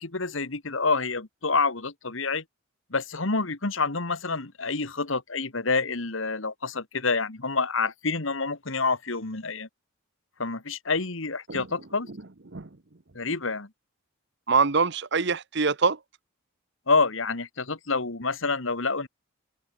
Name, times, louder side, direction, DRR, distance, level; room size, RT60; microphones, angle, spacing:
voice 1, 0.0-2.4 2.9-9.7 10.4-12.1 13.2-13.7 16.9-19.1, left 4 dB, 65° left, 1.9 m, -27 dB
voice 2, 14.5-16.0, right 4 dB, 55° right, 1.1 m, -24 dB
open air
head